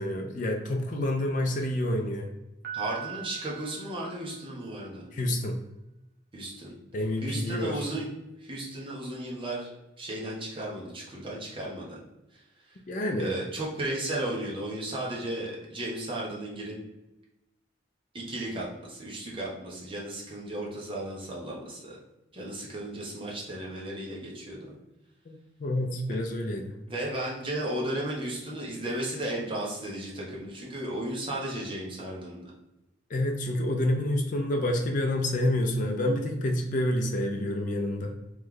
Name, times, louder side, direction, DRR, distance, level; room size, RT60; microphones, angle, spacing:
voice 1, 0.0-2.3 5.1-5.6 6.9-7.8 12.9-13.3 25.3-26.8 33.1-38.1, left 1 dB, 45° left, 2 dB, 0.5 m, -28 dB
Piano, 2.6-4.7, right 11 dB, 55° right, 0.8 m, -41 dB
voice 2, 2.7-5.1 6.3-6.7 7.2-8.1 8.4-9.7 10.0-12.0 12.3-12.4 12.7-12.8 13.2-16.8 18.1-22.0 22.3-24.7 26.1-26.2 26.9-32.5, right 1 dB, 30° right, -4 dB, 1.0 m, -35 dB
3.2 x 3.1 x 3.7 m, 0.95 s
head